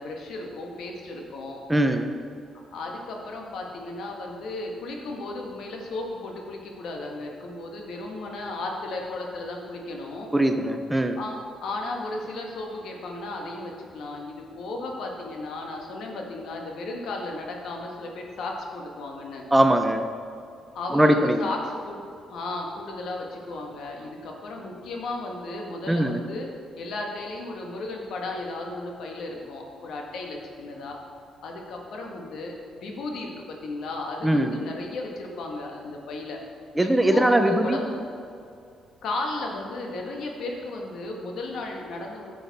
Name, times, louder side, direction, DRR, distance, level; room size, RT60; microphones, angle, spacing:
voice 1, 0.0-1.6 2.7-10.3 11.2-19.4 20.7-22.0 22.3-26.5 26.8-31.0 31.4-36.4 36.8-38.0 39.0-42.3, left 2 dB, 75° left, 1 dB, 1.5 m, -35 dB
voice 2, 1.7-2.1 10.3-11.2 19.5-20.0 20.9-21.4 25.9-26.2 34.2-34.6 36.8-37.8, right 1 dB, 10° right, 7 dB, 0.6 m, -20 dB
9.5 x 7.0 x 4.1 m, 2.4 s
cardioid pair, 90°, 0 cm